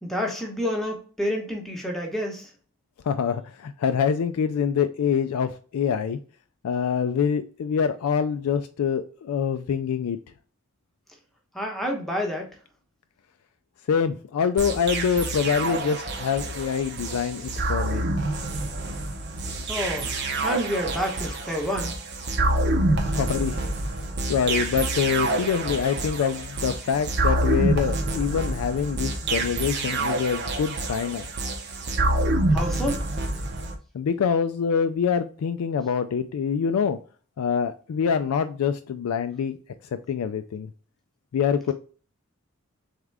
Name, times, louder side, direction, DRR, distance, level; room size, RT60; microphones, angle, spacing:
voice 1, 0.0-2.5 11.5-12.6 19.7-20.2 20.4-21.9 32.5-33.1, equal, ahead, 0.9 m, -29 dB
voice 2, 3.0-6.2 6.6-10.2 13.9-18.0 23.0-23.7 24.3-31.3 33.9-37.0 37.4-39.6 39.9-40.7 41.3-41.7, left 7 dB, 85° left, 0.3 m, -25 dB
sound 1, 14.6-33.8, right 2 dB, 50° right, 0.7 m, -27 dB
3.6 x 3.6 x 3.3 m
head